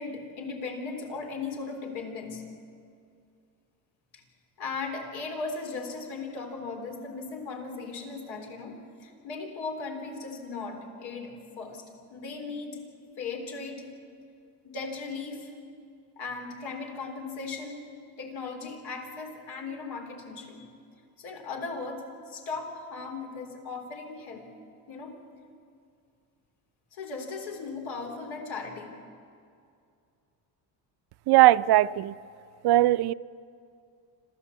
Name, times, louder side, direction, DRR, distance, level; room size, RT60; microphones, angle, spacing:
voice 1, 0.0-2.4 4.1-4.2 4.6-12.8 13.2-13.9 14.6-15.5 16.2-17.9 18.2-20.7 21.2-24.5 24.9-25.2 26.9-28.9, left 4 dB, 85° left, 3.7 m, -37 dB
voice 2, 31.3-32.1 32.6-33.1, right 15 dB, 60° right, 0.6 m, -19 dB
26.5 x 15.0 x 8.3 m
cardioid pair, 110°, 45 cm